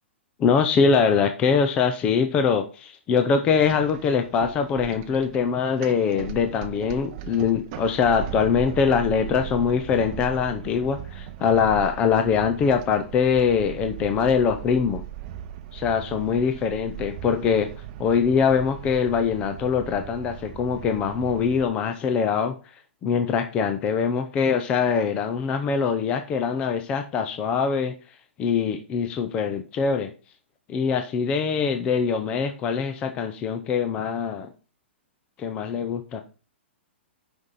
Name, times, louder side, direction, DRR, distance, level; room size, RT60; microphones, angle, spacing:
voice 1, 0.4-15.0 15.7-17.7 18.0-22.5 23.0-27.9 28.4-30.1 30.7-34.5 35.4-36.2, left 6 dB, 15° left, 7 dB, 0.5 m, -23 dB
sound 1, 3.6-21.7, right 10 dB, 30° right, 0.7 m, -38 dB
6.3 x 5.3 x 5.6 m, 0.34 s
hypercardioid pair, 175°, 7 cm